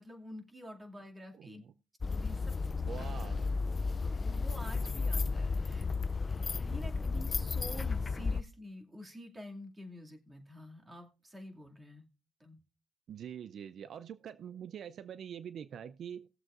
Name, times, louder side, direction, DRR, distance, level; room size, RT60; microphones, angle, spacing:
voice 1, 0.0-1.6 2.1-2.6 2.9-3.1 3.8-5.9 6.6-12.1 12.4-12.6, equal, 20° right, 2.4 m, -48 dB
voice 2, 1.3-1.7 2.8-3.5 13.1-16.3, right 8 dB, 65° right, 0.4 m, -45 dB
sound 1, 2.0-8.4, left 4 dB, 35° left, 0.4 m, -33 dB
19.0 x 7.6 x 2.5 m
cardioid pair, 90°, 0 cm